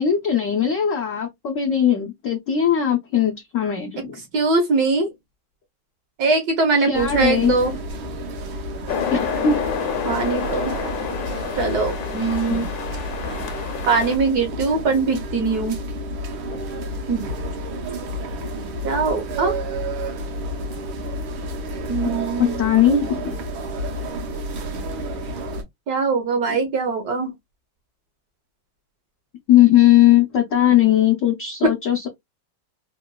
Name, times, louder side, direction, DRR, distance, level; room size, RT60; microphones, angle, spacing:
voice 1, 0.0-4.2 6.8-7.5 9.1-9.6 12.5-12.7 16.5-16.6 22.4-23.4 29.5-32.1, left 10 dB, 80° left, 0.7 m, -19 dB
voice 2, 4.3-5.1 6.2-7.7 10.0-10.8 11.6-12.7 13.9-15.8 17.1-17.3 18.8-19.6 21.9-22.6 25.9-27.3, right 4 dB, 65° right, 1.1 m, -21 dB
sound 1, 6.9-25.6, right 1 dB, 80° right, 1.6 m, -30 dB
sound 2, 8.9-14.2, left 7 dB, 65° left, 1.0 m, -29 dB
3.8 x 2.2 x 2.2 m
omnidirectional pair, 2.2 m